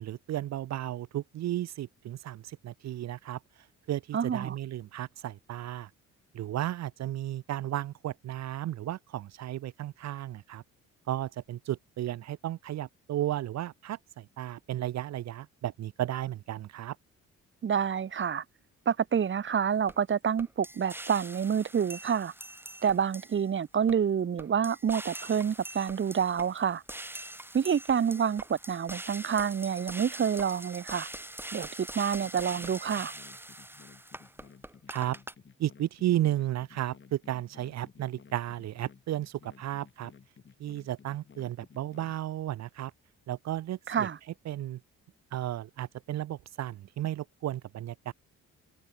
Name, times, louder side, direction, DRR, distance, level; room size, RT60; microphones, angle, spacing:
voice 1, 0.0-3.4 3.9-5.9 6.3-10.6 11.1-17.0 34.9-35.2 35.6-40.1 40.6-42.9 43.3-44.1 44.5-44.8 45.3-48.1, right 13 dB, 60° right, 0.7 m, -34 dB
voice 2, 4.1-4.5 17.6-18.4 18.9-22.3 22.8-26.8 27.5-31.1 31.5-33.1 43.9-44.2, right 7 dB, 40° right, 1.2 m, -28 dB
sound 1, 19.9-20.0 20.4-23.5 23.9-24.0 24.4-35.3, right 1 dB, 5° right, 1.2 m, -43 dB
sound 2, 32.2-42.2, left 6 dB, 40° left, 4.9 m, -56 dB
cardioid pair, 90°, 30 cm